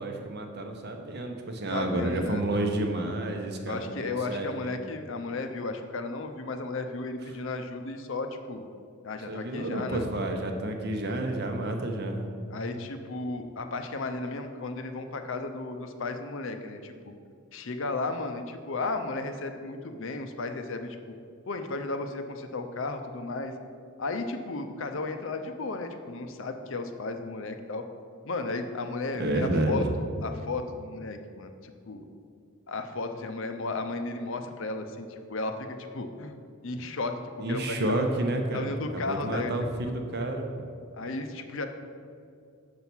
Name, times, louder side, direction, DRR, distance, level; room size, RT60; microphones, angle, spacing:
voice 1, 0.0-4.8 9.3-12.2 29.2-29.8 37.4-38.7 38.9-40.5, right 1 dB, 50° right, 4 dB, 0.8 m, -30 dB
voice 2, 1.7-2.7 3.7-8.6 9.0-10.1 12.5-16.9 17.5-21.1 21.5-23.5 24.0-27.8 28.2-32.1 32.7-35.7 35.9-37.2 37.5-38.0 38.5-39.5 39.8-39.9 40.9-41.7, left 3 dB, 60° left, 7 dB, 0.6 m, -34 dB
6.8 x 5.6 x 6.0 m, 2.3 s
head